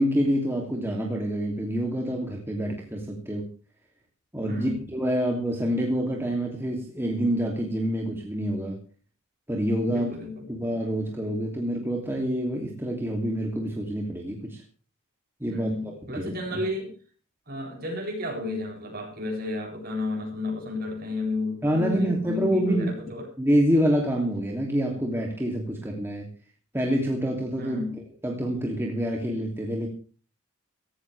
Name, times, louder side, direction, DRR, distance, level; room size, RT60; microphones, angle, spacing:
voice 1, 0.0-3.4 4.3-8.8 9.5-10.1 10.5-14.6 15.4-15.7 16.1-16.6 21.6-22.9 23.4-26.3 26.7-29.9, equal, 10° right, -1 dB, 2.8 m, -27 dB
voice 2, 4.5-4.8 9.9-10.4 15.5-16.9 17.5-23.3 27.6-28.0, left 2 dB, 40° right, 1 dB, 7.6 m, -32 dB
17.0 x 16.5 x 3.5 m, 0.40 s
head